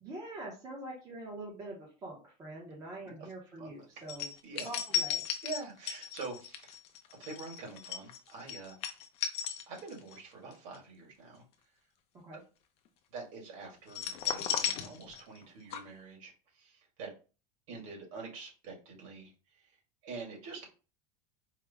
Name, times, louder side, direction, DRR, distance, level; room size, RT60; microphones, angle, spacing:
voice 1, 0.0-4.3 4.6-5.2 12.1-12.4, right 2 dB, 15° right, -3 dB, 0.7 m, -44 dB
sound 1, 4.1-10.2 10.5-10.8 13.9-15.5 15.7-15.8, left 8 dB, 30° left, 0.4 m, -35 dB
voice 2, 5.4-6.7 7.2-8.8 9.7-11.4 13.1-17.1 17.7-20.7, right 4 dB, 50° right, -1 dB, 1.8 m, -45 dB
4.7 x 2.1 x 3.4 m, 0.34 s
supercardioid pair, 175°, 20 cm